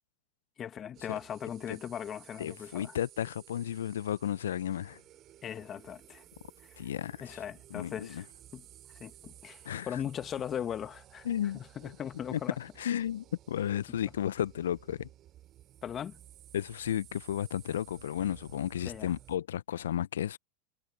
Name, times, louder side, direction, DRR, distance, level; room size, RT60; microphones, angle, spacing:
voice 1, 0.6-2.9 5.4-6.2 7.2-8.3 8.5-8.7 9.0-11.3 11.5-12.6 15.8-16.2 18.9-19.1, left 9 dB, 30° left, 1.9 m, -39 dB
sound 1, 0.9-19.4, right 13 dB, 40° right, 3.0 m, -55 dB
voice 2, 2.4-5.0 6.8-7.4 7.7-8.2 9.6-10.0 11.2-11.6 12.3-15.1 16.5-20.4, left 10 dB, 75° left, 0.8 m, -33 dB
hypercardioid pair, 85°, 0 cm